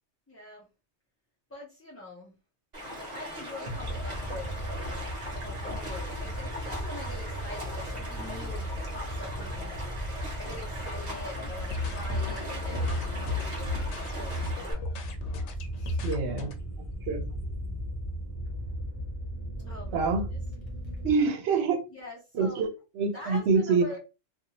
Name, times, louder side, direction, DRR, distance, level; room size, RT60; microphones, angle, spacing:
voice 1, 0.3-0.7 1.5-2.3 3.1-4.5 5.4-9.9 10.4-14.4 15.8-16.0 19.6-20.0 21.9-22.6 23.1-24.0, left 2 dB, 20° left, -6 dB, 0.4 m, -44 dB
Stream, 2.7-14.7, equal, 40° right, 1.1 m, -40 dB
sound 1, 3.7-21.1, equal, 35° left, 0.8 m, -36 dB
sound 2, 11.5-16.5, left 4 dB, 90° left, 0.9 m, -35 dB
voice 2, 16.0-16.5 17.1-17.3 19.9-20.3 21.0-21.8 22.3-23.8, right 4 dB, 70° right, 7 dB, 0.9 m, -26 dB
2.7 x 2.3 x 2.8 m, 0.29 s
omnidirectional pair, 1.1 m